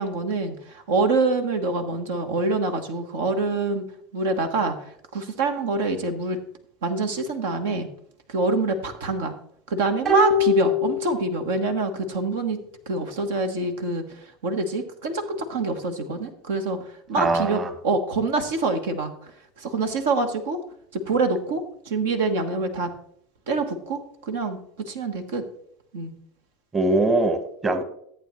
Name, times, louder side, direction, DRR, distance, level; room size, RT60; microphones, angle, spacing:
voice 1, 0.0-3.8 4.1-6.4 6.8-7.9 8.3-9.3 9.7-12.6 12.9-19.3 19.6-20.6 20.9-22.9 23.5-25.4 25.9-26.1, right 3 dB, 75° right, 6 dB, 1.3 m, -26 dB
sound 1, 10.1-11.7 12.0-12.1, left 5 dB, 50° right, 5.3 m, -23 dB
voice 2, 17.2-17.7 26.7-27.8, right 2 dB, 25° right, 9 dB, 1.3 m, -22 dB
14.5 x 8.3 x 3.1 m, 0.69 s
hypercardioid pair, 80°, 0 cm